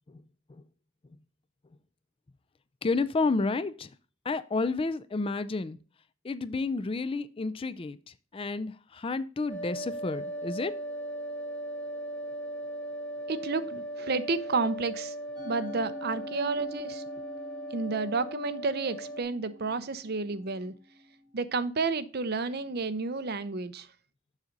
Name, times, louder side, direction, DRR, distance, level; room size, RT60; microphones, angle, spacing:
voice 1, 2.8-3.9 4.3-5.8 6.2-8.0 8.3-10.7, left 3 dB, 25° left, 0.4 m, -30 dB
sound 1, 9.5-19.2, right 1 dB, 5° left, 1.3 m, -38 dB
voice 2, 13.3-15.1 15.4-17.0 17.7-20.7 21.3-23.9, right 4 dB, 50° right, 0.7 m, -31 dB
Musical instrument, 15.4-21.8, left 1 dB, 20° right, 2.8 m, -47 dB
7.3 x 6.4 x 3.9 m
head